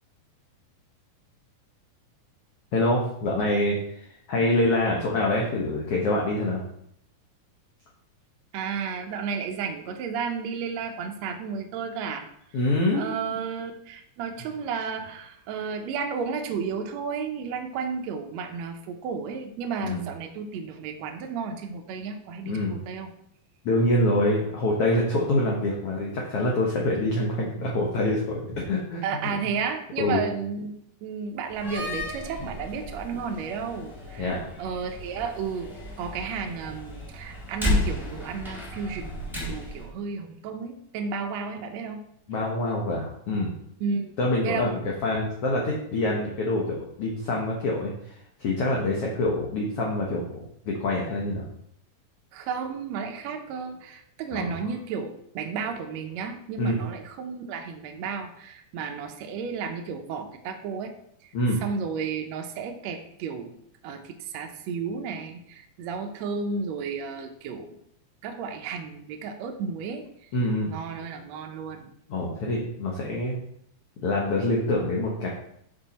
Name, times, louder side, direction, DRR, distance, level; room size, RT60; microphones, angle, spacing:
voice 1, 2.7-6.6 12.5-13.2 19.8-20.0 22.4-22.8 23.6-29.0 30.0-30.2 34.2-34.5 42.3-43.5 44.2-50.5 50.8-51.5 54.3-54.5 56.6-56.8 61.3-61.6 70.3-70.7 72.1-73.4 74.0-75.3, left 1 dB, 75° left, -2 dB, 1.3 m, -25 dB
voice 2, 8.5-12.3 12.9-23.1 29.0-30.7 31.0-34.3 34.6-35.7 36.0-42.0 43.8-44.1 44.4-44.7 52.3-60.9 61.2-61.3 61.6-63.6 63.8-67.8 68.2-70.3 70.6-71.9, right 5 dB, 90° right, 4 dB, 1.5 m, -33 dB
Slam, 31.5-39.9, left 1 dB, ahead, 1.1 m, -33 dB
7.2 x 5.4 x 4.1 m, 0.72 s
omnidirectional pair, 4.1 m